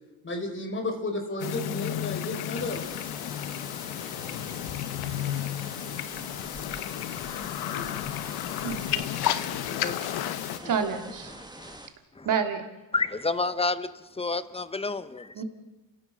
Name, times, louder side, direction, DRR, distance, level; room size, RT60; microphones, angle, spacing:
voice 1, 0.2-2.9 7.2-8.0 9.5-10.2, left 2 dB, 30° left, 6 dB, 4.7 m, -34 dB
sound 1, 1.4-10.6, left 12 dB, 85° left, 1.1 m, -32 dB
sound 2, 2.6-11.9, right 2 dB, 10° right, 2.1 m, -45 dB
voice 2, 8.6-9.5 10.6-11.3 12.2-12.6 15.3-15.4, right 6 dB, 55° right, 5 dB, 3.2 m, -29 dB
voice 3, 11.3-11.8 12.2-12.3 12.9-15.4, left 3 dB, 15° left, 13 dB, 1.1 m, -30 dB
29.5 x 16.0 x 6.4 m, 1.1 s
cardioid pair, 90°, 37 cm